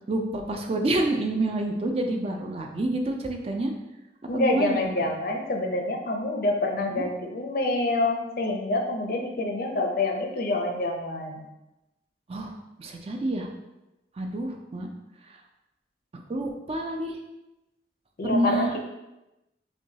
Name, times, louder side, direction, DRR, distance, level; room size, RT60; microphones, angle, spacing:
voice 1, 0.1-3.7 4.3-4.8 7.0-7.1 12.3-13.5 14.2-14.9 15.3-15.4 16.3-17.2 18.2-18.8, right 1 dB, 35° right, 3 dB, 0.4 m, -28 dB
voice 2, 4.3-11.5 18.2-18.8, left 2 dB, 55° left, 2 dB, 0.6 m, -27 dB
5.8 x 2.3 x 2.8 m, 0.97 s
head